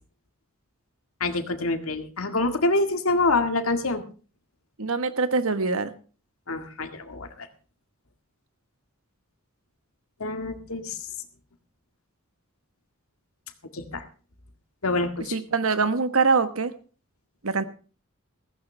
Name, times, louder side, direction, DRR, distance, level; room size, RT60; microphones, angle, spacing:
voice 1, 1.2-4.0 6.5-7.5 10.2-11.0 13.7-14.0 14.8-15.3, left 2 dB, 80° left, 6 dB, 1.9 m, -26 dB
voice 2, 4.8-5.9 15.3-16.7 17.4-17.6, right 4 dB, 75° right, 11 dB, 1.3 m, -23 dB
15.5 x 15.0 x 3.4 m, 0.37 s
head